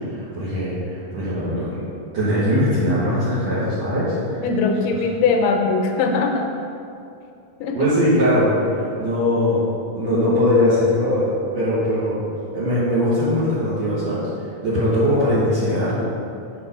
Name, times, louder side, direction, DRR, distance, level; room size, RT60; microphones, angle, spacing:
voice 1, 0.1-1.8 2.1-4.4 7.7-8.5 9.0-9.6 9.9-12.2 12.5-14.2 14.6-16.0, left 1 dB, 55° right, -12 dB, 2.4 m, -20 dB
voice 2, 4.4-6.5 7.6-7.8, left 4 dB, 85° left, 3 dB, 2.4 m, -20 dB
6.6 x 5.1 x 5.4 m, 2.5 s
omnidirectional pair, 3.9 m